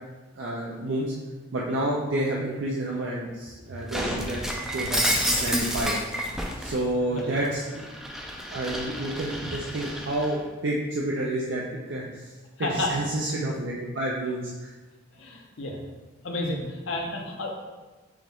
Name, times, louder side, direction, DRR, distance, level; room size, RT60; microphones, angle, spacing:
voice 1, 0.4-1.1 1.5-4.4 4.7-5.0 5.4-6.0 6.6-7.9 8.5-12.3 12.6-14.7, right 1 dB, 70° right, -3 dB, 0.5 m, -29 dB
Shatter, 3.9-6.8 7.2-10.3, equal, ahead, 0.4 m, -29 dB
voice 2, 7.1-7.5 12.6-12.9 15.2-15.8 16.2-17.5, left 2 dB, 75° left, 0 dB, 0.8 m, -31 dB
6.1 x 2.3 x 3.5 m, 1.2 s
head